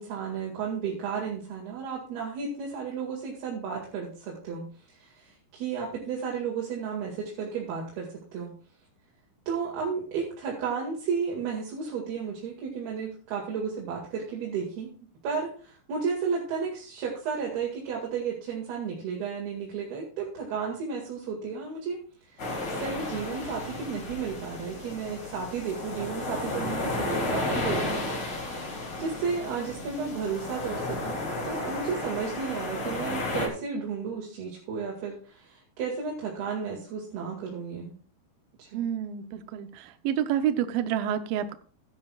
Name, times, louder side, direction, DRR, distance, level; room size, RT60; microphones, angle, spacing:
voice 1, 0.0-8.5 9.5-14.9 15.2-28.0 28.5-28.6 29.0-37.9 38.6-38.8, right 6 dB, 60° right, -2 dB, 3.8 m, -33 dB
sound 1, 22.4-33.5, left 2 dB, 40° left, 1.8 m, -33 dB
voice 2, 38.7-41.6, right 10 dB, 85° right, 9 dB, 2.0 m, -29 dB
16.0 x 10.0 x 2.4 m, 0.41 s
omnidirectional pair, 5.3 m